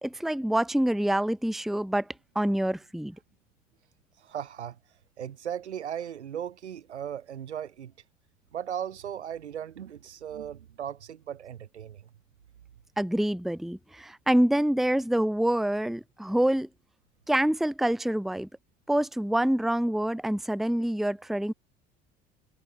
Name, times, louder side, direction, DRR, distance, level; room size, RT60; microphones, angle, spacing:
voice 1, 0.0-2.1 2.3-3.1 13.0-16.7 17.3-18.5 18.9-21.5, right 1 dB, ahead, 1.3 m, -26 dB
voice 2, 4.2-7.9 8.5-12.1, right 9 dB, 75° right, 4.9 m, -37 dB
figure-of-eight pair, 65°, 34 cm